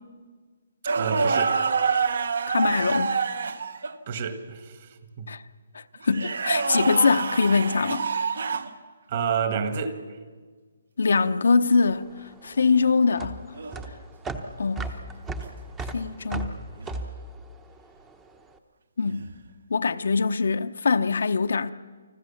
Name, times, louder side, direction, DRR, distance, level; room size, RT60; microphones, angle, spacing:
sound 1, 0.8-4.0 6.0-8.7 11.1-11.3 13.5-13.9 16.8-17.0 19.0-19.4, right 5 dB, 65° right, 1.4 m, -27 dB
voice 1, 1.0-1.6 4.1-4.9 5.2-5.3 9.1-10.0, right 6 dB, 30° right, 1.5 m, -29 dB
voice 2, 2.5-3.1 5.3-5.4 5.7-8.1 11.0-12.1 12.4-13.4 14.6-14.9 15.9-16.5 19.0-19.2 19.7-21.7, left 4 dB, 70° left, 0.9 m, -23 dB
sound 2, 11.8-18.4, right 2 dB, 10° right, 0.9 m, -36 dB
29.5 x 20.5 x 7.2 m
hypercardioid pair, 175°, 0 cm